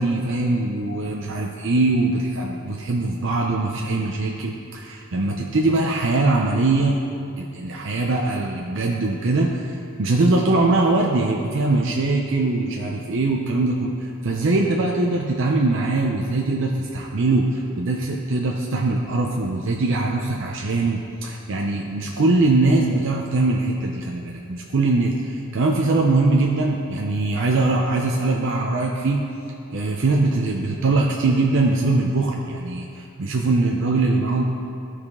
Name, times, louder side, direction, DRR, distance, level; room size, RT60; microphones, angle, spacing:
voice 1, 0.0-7.0 7.4-29.2 29.7-34.4, right 2 dB, 60° right, 0 dB, 0.6 m, -22 dB
14.5 x 4.9 x 3.6 m, 2.6 s
head